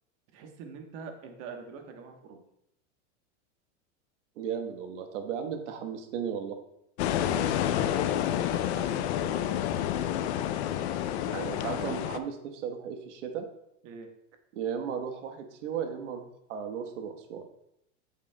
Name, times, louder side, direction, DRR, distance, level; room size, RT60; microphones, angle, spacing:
voice 1, 0.3-2.4 7.2-10.5 13.8-14.1, right 5 dB, 40° right, 4 dB, 1.2 m, -45 dB
voice 2, 4.4-6.6 11.2-13.4 14.5-17.4, right 7 dB, 80° right, 5 dB, 1.3 m, -35 dB
sound 1, 7.0-12.2, left 11 dB, 65° left, 0.6 m, -29 dB
8.6 x 7.2 x 2.2 m, 0.79 s
supercardioid pair, 145°, 36 cm